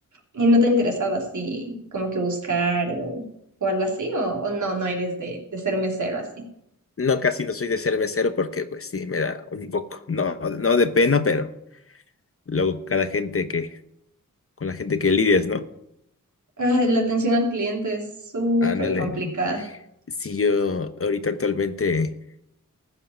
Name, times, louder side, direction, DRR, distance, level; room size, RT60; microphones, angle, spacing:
voice 1, 0.3-3.2 3.6-6.4 16.6-18.1 18.3-19.7, equal, 65° right, 0 dB, 3.2 m, -24 dB
voice 2, 7.0-11.5 12.5-13.7 14.6-15.6 18.6-19.2 20.2-22.1, left 4 dB, 45° left, 10 dB, 0.9 m, -23 dB
15.0 x 5.6 x 7.8 m, 0.79 s
cardioid pair, 50°, 32 cm